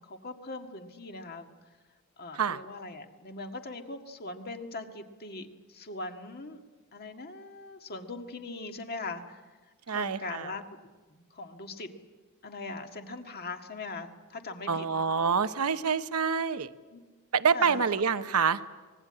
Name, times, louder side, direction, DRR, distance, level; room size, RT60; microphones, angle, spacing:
voice 1, 0.0-1.5 2.2-6.6 6.9-9.4 9.9-10.7 11.1-11.9 12.4-14.9 16.9-17.0 17.5-17.8, left 3 dB, 45° left, 5 dB, 1.8 m, -40 dB
voice 2, 9.9-10.5 14.7-16.7 17.3-18.6, right 6 dB, 85° right, 11 dB, 0.9 m, -27 dB
25.0 x 20.5 x 8.8 m, 1.3 s
head